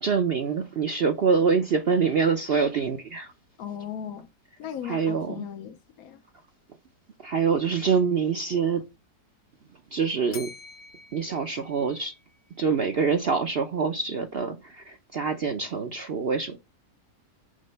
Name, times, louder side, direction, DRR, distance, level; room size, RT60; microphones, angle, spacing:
voice 1, 0.0-3.3 4.8-5.5 7.2-8.8 9.9-10.5 11.1-12.1 12.6-16.6, right 5 dB, 55° right, 0.8 m, -25 dB
voice 2, 3.6-4.3 4.6-6.2, left 9 dB, 70° left, 1.2 m, -37 dB
Bell, 10.3-12.5, left 5 dB, 45° left, 1.2 m, -46 dB
6.6 x 4.2 x 5.4 m
omnidirectional pair, 1.7 m